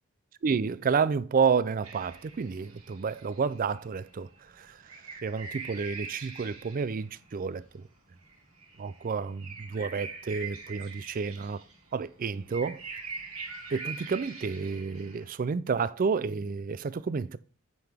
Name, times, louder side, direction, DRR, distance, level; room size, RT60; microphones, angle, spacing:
voice 1, 0.4-4.3 4.5-4.8 5.2-7.9 8.8-11.6 11.9-12.8 13.7-17.4, right 5 dB, 40° right, 0.4 m, -30 dB
sound 1, 1.8-15.2, right 4 dB, 75° right, 2.7 m, -44 dB
8.9 x 5.7 x 3.5 m
head